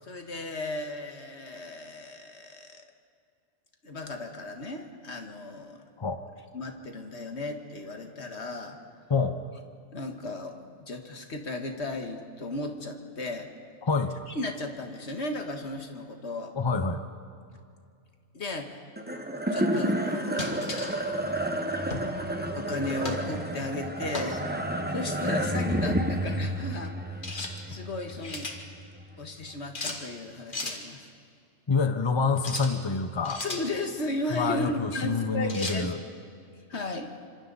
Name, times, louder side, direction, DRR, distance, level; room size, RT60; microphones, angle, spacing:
voice 1, 0.0-2.9 3.8-5.9 6.5-8.8 9.9-13.5 14.3-16.5 18.3-18.8 19.5-21.4 22.5-24.5 24.9-27.0 27.7-28.5 29.2-31.1 33.4-35.9 36.7-37.2, left 2 dB, 65° left, 5 dB, 1.9 m, -35 dB
voice 2, 13.8-14.2 16.5-17.0 31.7-33.4 34.3-36.0, left 4 dB, 25° left, 9 dB, 0.8 m, -27 dB
sound 1, 19.0-29.5, right 1 dB, 10° right, 1.0 m, -31 dB
sound 2, 20.4-21.0 21.9-22.1 23.0-23.3 24.1-24.4 27.2-27.5 28.0-28.6 29.7-30.0 30.5-30.8 32.4-32.7 33.2-33.7 35.5-35.8, left 2 dB, 45° left, 1.9 m, -35 dB
26.5 x 25.5 x 4.1 m, 2.3 s
omnidirectional pair, 1.2 m